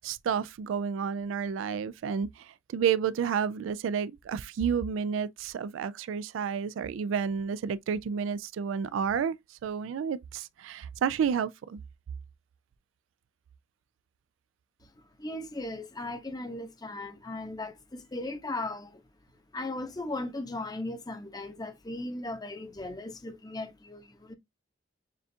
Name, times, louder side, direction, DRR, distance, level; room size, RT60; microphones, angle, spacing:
voice 1, 0.0-9.4 9.6-11.8, right 7 dB, 90° right, 0.3 m, -30 dB
voice 2, 15.2-19.0 19.5-24.3, left 2 dB, 20° left, 0.7 m, -37 dB
6.6 x 2.4 x 2.6 m
head